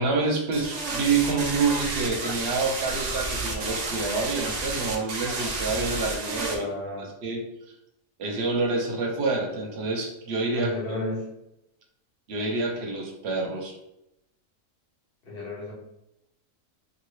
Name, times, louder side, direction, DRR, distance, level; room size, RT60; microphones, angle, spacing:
voice 1, 0.0-6.6 7.2-7.4 8.2-10.7 12.3-13.7, right 3 dB, 60° right, 1 dB, 0.9 m, -27 dB
sound 1, 0.5-6.6, right 3 dB, 85° right, 0.3 m, -31 dB
voice 2, 6.5-7.2 10.5-11.3 15.2-15.7, left 1 dB, 45° left, -4 dB, 1.1 m, -33 dB
2.8 x 2.6 x 3.2 m, 0.85 s
omnidirectional pair, 1.4 m